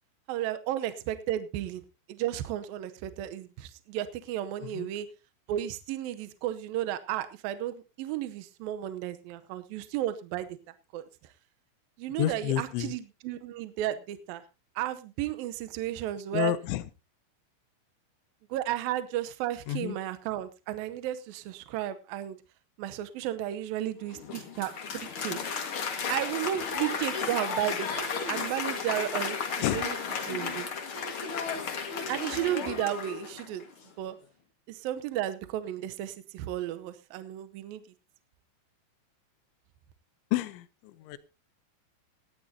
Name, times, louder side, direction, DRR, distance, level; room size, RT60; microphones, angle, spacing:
voice 1, 0.3-1.8 2.1-5.1 5.5-10.6 10.9-11.3 12.0-14.4 14.8-16.5 18.5-22.4 22.8-25.4 26.1-30.0 30.3-30.7 32.1-33.6 34.0-34.2 34.7-37.8, right 12 dB, 85° right, 10 dB, 2.0 m, -33 dB
voice 2, 12.2-12.9 16.3-16.8 19.7-20.0 29.6-29.8 40.3-41.2, left 14 dB, 85° left, 14 dB, 3.2 m, -30 dB
Applause, 24.1-33.6, left 5 dB, 65° left, 1.3 m, -34 dB
18.0 x 13.0 x 2.8 m, 0.29 s
omnidirectional pair, 5.3 m